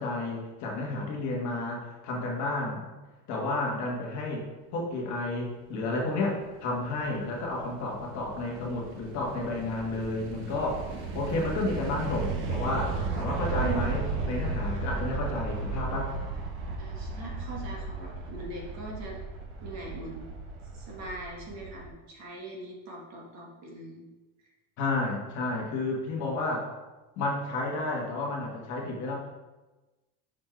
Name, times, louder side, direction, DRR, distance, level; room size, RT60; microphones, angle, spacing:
voice 1, 0.0-2.9 3.3-4.4 4.7-10.9 11.1-16.1 24.8-26.7 27.2-29.1, left 2 dB, 35° left, -1 dB, 1.3 m, -31 dB
sound 1, 6.4-21.9, right 3 dB, 60° right, 1.2 m, -35 dB
voice 2, 13.5-14.3 14.8-15.0 16.8-19.2 19.6-20.2 20.7-24.0, right 1 dB, 35° right, -2 dB, 1.2 m, -42 dB
6.2 x 4.3 x 4.4 m, 1.1 s
cardioid pair, 170°, 49 cm